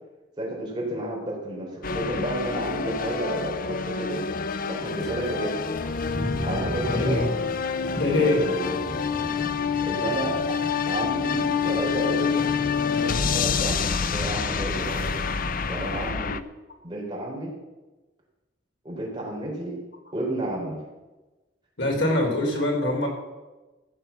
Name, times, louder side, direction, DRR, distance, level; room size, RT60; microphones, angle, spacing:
voice 1, 0.4-4.2 4.7-5.6 6.4-7.2 8.1-8.8 9.8-10.6 10.9-12.4 12.7-15.1 15.7-16.4 16.8-17.5 18.8-19.8 20.1-20.8, right 1 dB, 25° right, -3 dB, 4.3 m, -31 dB
sound 1, 1.8-16.4, left 6 dB, 50° left, 0.6 m, -27 dB
sound 2, 5.0-16.1, equal, ahead, 3.4 m, -37 dB
voice 2, 6.8-7.3 7.9-8.4 21.8-23.1, left 2 dB, 75° left, 0 dB, 3.7 m, -24 dB
15.0 x 7.9 x 7.1 m, 1.1 s
head